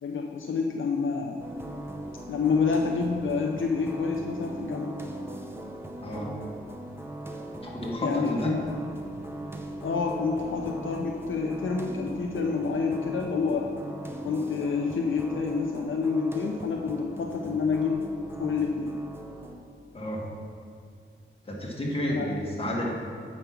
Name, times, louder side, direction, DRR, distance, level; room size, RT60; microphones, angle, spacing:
voice 1, 0.0-1.4 2.3-4.9 8.0-8.6 9.8-13.7 14.2-18.1 18.4-19.0 22.1-22.3, left 5 dB, 70° left, 1 dB, 0.6 m, -28 dB
sound 1, 1.4-19.6, right 1 dB, 10° right, 0.7 m, -39 dB
voice 2, 6.0-6.3 7.6-8.5 19.9-20.2 21.4-22.9, equal, 25° left, -3 dB, 1.6 m, -31 dB
7.9 x 5.3 x 5.8 m, 2.2 s
wide cardioid pair, 135°, 21 cm